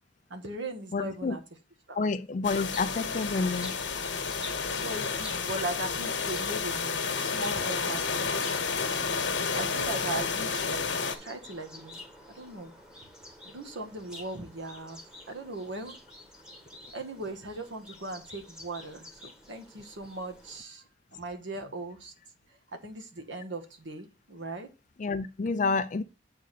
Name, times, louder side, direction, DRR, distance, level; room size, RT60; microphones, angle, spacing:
voice 1, 0.3-1.4 1.9-2.0 4.7-8.9 9.5-10.8 11.2-12.0 12.3-12.7 13.4-15.0 15.3-16.0 16.9-19.2 19.5-20.8 21.1-22.1 22.7-24.7, right 2 dB, 85° right, 1.5 m, -38 dB
voice 2, 0.9-1.4 1.9-3.7 25.0-26.0, left 4 dB, 45° left, 0.4 m, -29 dB
sound 1, 2.4-11.2, left 5 dB, 80° left, 1.2 m, -31 dB
sound 2, 2.7-20.6, left 1 dB, 5° right, 1.5 m, -48 dB
8.0 x 3.8 x 6.6 m
head